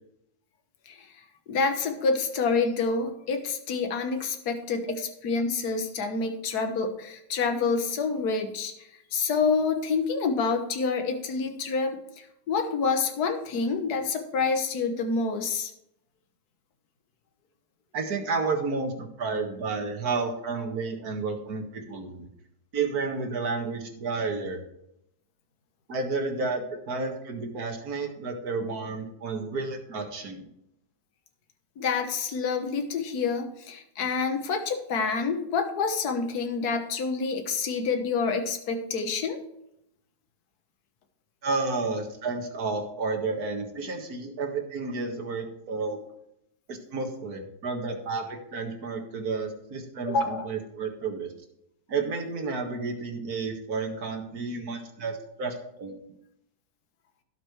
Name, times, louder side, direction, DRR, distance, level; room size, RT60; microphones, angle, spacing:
voice 1, 1.5-15.7 31.8-39.4 50.1-50.5, left 4 dB, 65° left, 5 dB, 1.7 m, -28 dB
voice 2, 17.9-22.3 22.7-24.6 25.9-30.5 41.4-46.0 46.7-51.3 51.9-55.5 55.8-56.0, right 4 dB, 60° right, 2 dB, 2.2 m, -31 dB
17.0 x 6.6 x 3.2 m, 0.78 s
omnidirectional pair, 1.8 m